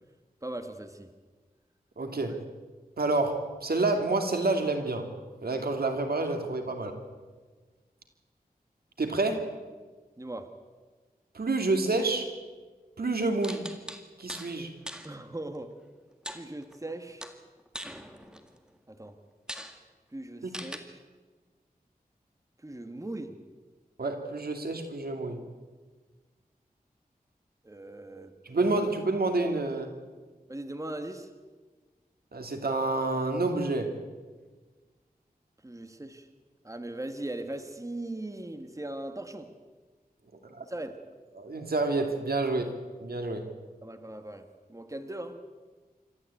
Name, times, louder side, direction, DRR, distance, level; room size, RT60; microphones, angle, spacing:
voice 1, 0.4-1.1 10.2-10.5 15.0-15.8 16.3-17.3 18.9-19.2 20.1-21.0 22.6-23.4 27.6-28.3 30.5-31.3 35.6-36.3 36.6-39.5 40.6-40.9 43.8-45.4, right 1 dB, 20° right, 7 dB, 1.7 m, -39 dB
voice 2, 2.0-2.4 3.0-5.1 5.4-6.9 9.0-9.5 11.3-12.3 13.0-13.6 14.2-14.7 20.4-20.5 24.0-25.4 28.4-29.9 32.3-33.9 40.4-40.6 41.4-42.7 43.0-43.5, right 2 dB, 85° right, 5 dB, 2.6 m, -28 dB
sound 1, 13.4-14.5 14.9-15.1 16.2-16.9 17.2-18.6 19.0-19.1 19.5-19.8 20.5-20.8, equal, 5° right, 2.0 m, -41 dB
26.5 x 13.5 x 8.5 m, 1.4 s
wide cardioid pair, 70°, 16 cm